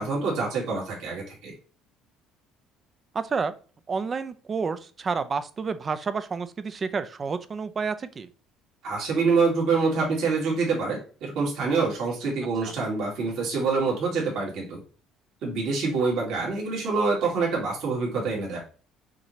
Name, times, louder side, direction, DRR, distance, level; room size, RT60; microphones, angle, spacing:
voice 1, 0.0-1.5 8.8-14.8 15.4-18.6, right 4 dB, 65° right, -3 dB, 2.1 m, -26 dB
voice 2, 3.1-3.5 3.9-8.3 12.6-12.7, right 5 dB, 30° right, 12 dB, 0.5 m, -30 dB
5.9 x 2.8 x 3.2 m, 0.38 s
cardioid pair, 100°, 0 cm